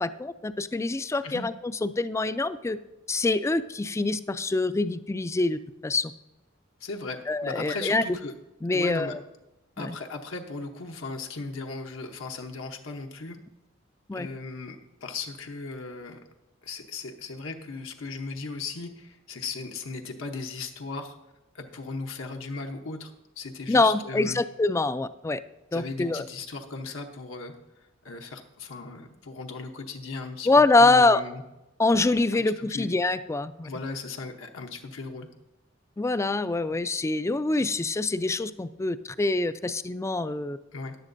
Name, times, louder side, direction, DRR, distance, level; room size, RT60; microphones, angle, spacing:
voice 1, 0.0-2.8 3.1-6.1 7.3-8.0 8.6-9.2 9.8-10.0 14.1-14.3 23.7-25.4 25.7-26.3 30.5-31.2 31.8-33.7 36.0-40.6, left 3 dB, 15° left, 13 dB, 0.3 m, -25 dB
voice 2, 6.8-8.3 8.7-9.1 9.8-13.4 14.1-16.2 16.6-21.2 21.5-24.4 25.7-27.5 28.0-30.5 30.8-31.4 32.3-32.9 33.6-35.3 40.7-41.0, left 3 dB, 75° left, 3 dB, 0.9 m, -37 dB
14.5 x 10.5 x 2.6 m, 0.97 s
head